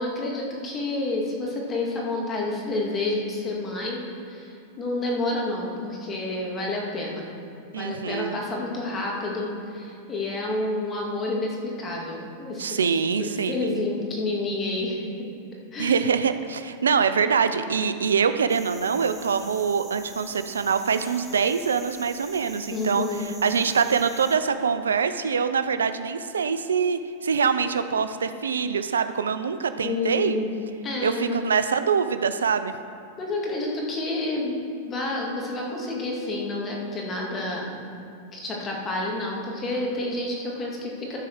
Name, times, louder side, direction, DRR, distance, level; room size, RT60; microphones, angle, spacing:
voice 1, 0.0-7.3 7.8-15.1 15.7-16.1 22.7-23.3 29.8-30.5 30.8-31.4 33.2-34.6 34.9-37.8 38.3-41.2, left 2 dB, 25° left, -1 dB, 2.4 m, -29 dB
voice 2, 7.7-8.4 12.6-13.8 15.8-23.1 23.4-30.4 31.0-32.7, right 6 dB, 85° right, 10 dB, 0.5 m, -24 dB
sound 1, 18.5-24.4, right 3 dB, 15° right, 1.4 m, -45 dB
13.0 x 4.8 x 6.3 m, 2.7 s
hypercardioid pair, 105°, 0 cm